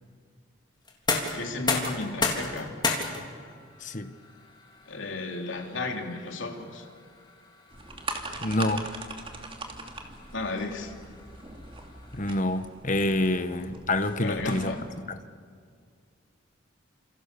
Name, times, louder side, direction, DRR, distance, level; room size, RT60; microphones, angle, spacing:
sound 1, 0.8-12.6, left 3 dB, 20° left, 3.4 m, -35 dB
voice 1, 1.3-2.7 4.9-6.8 10.3-10.9 14.2-14.8, left 3 dB, 70° left, 2 dB, 3.5 m, -34 dB
voice 2, 3.8-4.1 8.4-8.9 12.1-14.7 15.1-15.2, left 1 dB, 40° left, 10 dB, 1.3 m, -27 dB
sound 2, 7.7-15.0, right 2 dB, 25° right, 2.5 m, -41 dB
29.0 x 27.5 x 7.0 m, 2.1 s
head